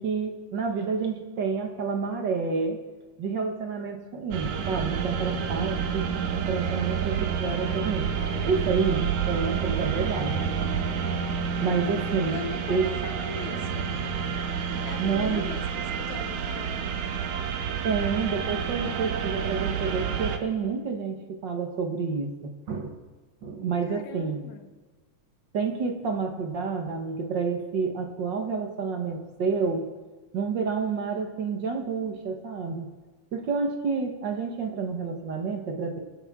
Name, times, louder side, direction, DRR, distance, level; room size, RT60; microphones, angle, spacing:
voice 1, 0.0-2.8 3.2-6.1 6.3-8.1 8.4-10.4 11.6-12.4 12.7-12.9 15.0-15.5 17.8-21.2 21.4-23.0 23.4-24.4 25.5-29.9 30.3-32.9 33.3-36.0, right 5 dB, 50° right, 3 dB, 1.4 m, -29 dB
sound 1, 4.3-20.4, right 7 dB, 75° right, 2.2 m, -29 dB
voice 2, 12.3-13.9 14.9-16.8 23.9-24.7, left 7 dB, 75° left, 6 dB, 2.4 m, -39 dB
26.5 x 10.0 x 3.7 m, 1.3 s
omnidirectional pair, 3.5 m